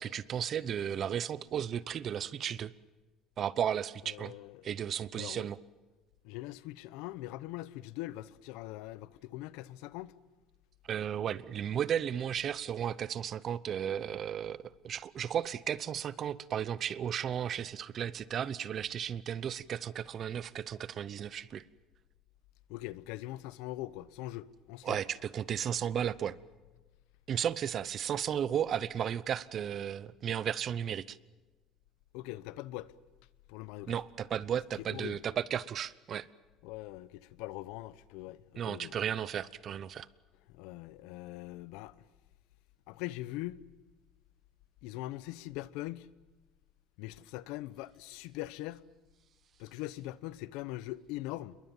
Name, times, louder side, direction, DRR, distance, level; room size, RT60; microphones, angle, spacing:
voice 1, 0.0-2.7 3.4-4.3 4.6-5.6 10.9-14.6 14.8-21.6 24.8-26.3 27.3-31.2 33.9-36.3 38.6-40.1, right 9 dB, 40° right, 0.8 m, -34 dB
voice 2, 4.0-4.7 5.1-5.5 6.2-10.1 22.7-25.0 32.1-32.9 33.5-34.0 34.9-35.2 36.6-38.9 40.5-41.9 42.9-43.6 44.8-46.1 47.0-48.8 49.6-51.6, left 17 dB, 85° left, 0.9 m, -42 dB
28.0 x 22.5 x 7.3 m
cardioid pair, 135°, 0 cm